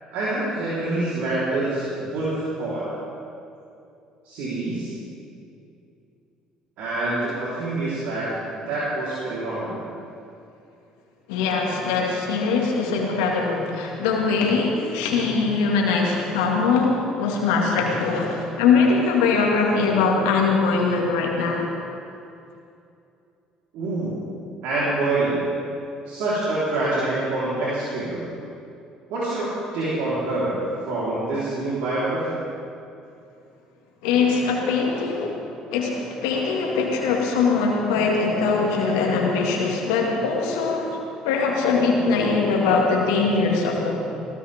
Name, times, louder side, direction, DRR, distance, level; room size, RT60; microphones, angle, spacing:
voice 1, 0.1-2.9 4.2-4.9 6.8-8.3 8.5-9.8 23.7-24.2 24.6-25.4 26.1-28.2 29.1-30.5 30.8-32.4, right 2 dB, 70° right, -10 dB, 4.1 m, -26 dB
voice 2, 11.3-21.7 34.0-35.4 35.7-41.0 41.2-44.1, left 4 dB, 85° left, 0 dB, 2.2 m, -22 dB
20.0 x 16.5 x 3.7 m, 2.6 s
hypercardioid pair, 60°, 3 cm